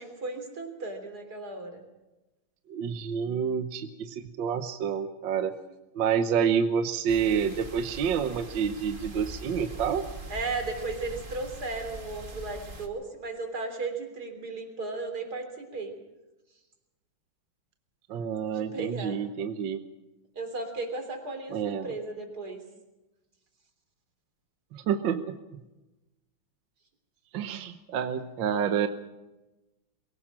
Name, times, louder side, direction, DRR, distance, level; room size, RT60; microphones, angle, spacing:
voice 1, 0.0-1.8 10.3-15.9 18.5-19.2 20.4-22.6, right 3 dB, 45° right, 5 dB, 3.9 m, -35 dB
voice 2, 2.7-5.5 5.9-10.1 18.1-19.8 21.5-21.9 24.7-25.6 27.3-28.9, right 7 dB, 65° right, 8 dB, 1.7 m, -28 dB
sound 1, 7.1-12.9, right 2 dB, 25° right, 2.0 m, -42 dB
23.0 x 17.0 x 7.5 m, 1.0 s
omnidirectional pair, 2.3 m